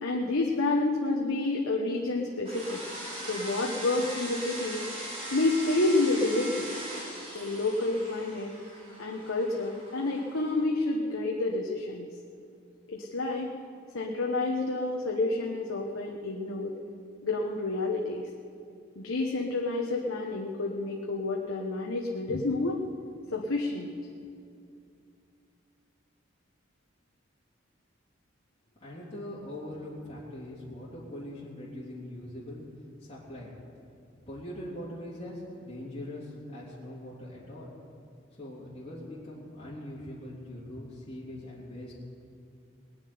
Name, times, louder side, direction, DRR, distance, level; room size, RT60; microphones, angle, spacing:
voice 1, 0.0-2.8 3.3-4.8 5.3-6.7 7.3-8.5 9.0-12.1 12.9-13.5 13.9-16.8 17.2-18.2 19.0-22.8 23.3-23.9, left 2 dB, 90° left, 0 dB, 1.2 m, -29 dB
sound 1, 2.4-10.6, right 1 dB, 30° right, 3.8 m, -40 dB
voice 2, 28.8-32.6 33.0-33.5 34.3-37.7 38.4-41.9, left 1 dB, 30° left, -10 dB, 3.6 m, -41 dB
20.0 x 7.3 x 9.5 m, 2.5 s
head